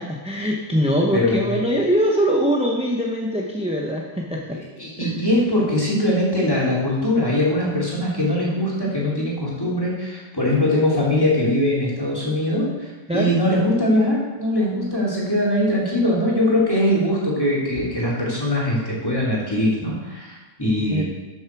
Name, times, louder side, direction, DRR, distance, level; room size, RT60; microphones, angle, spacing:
voice 1, 0.0-4.6 5.0-5.1 13.1-13.3 20.6-21.0, equal, 5° right, -2 dB, 0.7 m, -22 dB
voice 2, 1.1-1.6 4.5-21.0, left 1 dB, 15° left, -6 dB, 3.2 m, -21 dB
13.0 x 7.1 x 4.7 m, 1.2 s
omnidirectional pair, 1.6 m